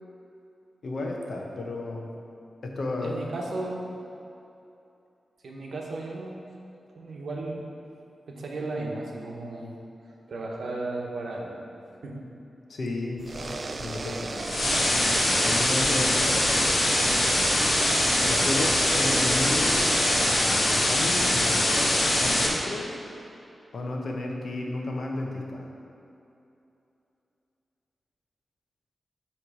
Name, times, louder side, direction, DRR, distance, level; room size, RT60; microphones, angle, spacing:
voice 1, 0.8-2.1 2.6-3.2 12.7-14.5 15.4-16.8 18.2-19.9 20.2-22.9 23.7-25.7, left 2 dB, 60° left, 0 dB, 0.8 m, -33 dB
voice 2, 3.0-3.9 5.4-6.5 6.9-7.6 8.3-9.8 10.3-11.7 12.0-12.2, right 2 dB, 65° right, -1 dB, 1.0 m, -35 dB
sound 1, 13.2-20.4, right 3 dB, 35° right, 0.3 m, -34 dB
sound 2, 14.4-22.5, left 1 dB, 35° left, 1.0 m, -23 dB
8.3 x 3.2 x 6.1 m, 2.8 s
wide cardioid pair, 170°, 0 cm